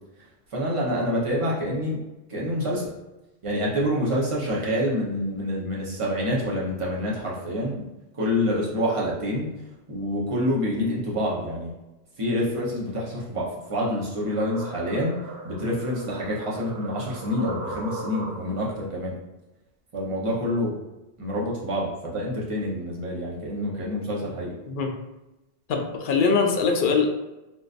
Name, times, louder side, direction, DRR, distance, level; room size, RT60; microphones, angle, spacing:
voice 1, 0.5-2.0 2.3-2.9 3.4-7.9 8.1-9.5 9.9-11.7 12.2-15.1 15.4-19.1 19.9-20.7 21.2-24.5, equal, 35° right, -5 dB, 0.8 m, -27 dB
sound 1, 13.6-18.7, right 1 dB, 80° right, 0.9 m, -38 dB
voice 2, 25.7-27.1, left 5 dB, 60° left, 3 dB, 0.6 m, -22 dB
3.8 x 2.5 x 2.5 m, 1.0 s
omnidirectional pair, 1.0 m